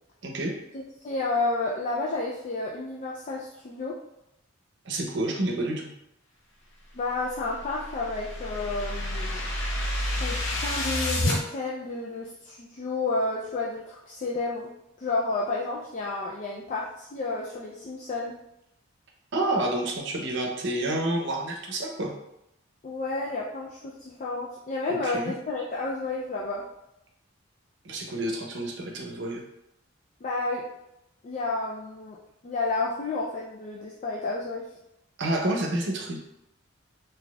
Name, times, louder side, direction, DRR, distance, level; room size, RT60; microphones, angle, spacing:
voice 1, 0.7-4.0 6.9-9.4 10.2-14.7 15.0-18.4 22.8-26.6 30.2-30.6 31.2-32.2 32.4-34.7, left 3 dB, 35° left, -3 dB, 0.3 m, -31 dB
voice 2, 4.9-5.9 19.3-22.1 25.0-25.4 27.8-29.4 35.2-36.2, right 1 dB, 60° right, 1 dB, 0.7 m, -29 dB
sound 1, 7.3-11.4, left 1 dB, 70° left, 0.7 m, -29 dB
3.9 x 2.7 x 2.3 m, 0.84 s
head